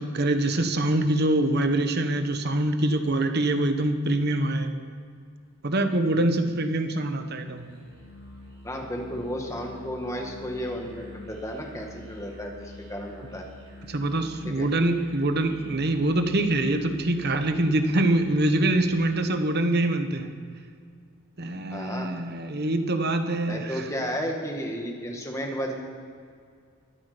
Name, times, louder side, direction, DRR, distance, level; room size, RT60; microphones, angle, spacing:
voice 1, 0.0-4.7 5.6-7.7 13.9-20.3 21.4-23.9, right 1 dB, 45° right, 7 dB, 1.2 m, -24 dB
Musical instrument, 7.6-19.3, left 1 dB, 25° right, 3.2 m, -47 dB
voice 2, 8.6-13.5 14.4-14.7 21.7-22.1 23.5-25.8, equal, 15° left, 1 dB, 1.8 m, -33 dB
22.0 x 8.5 x 5.1 m, 2.2 s
head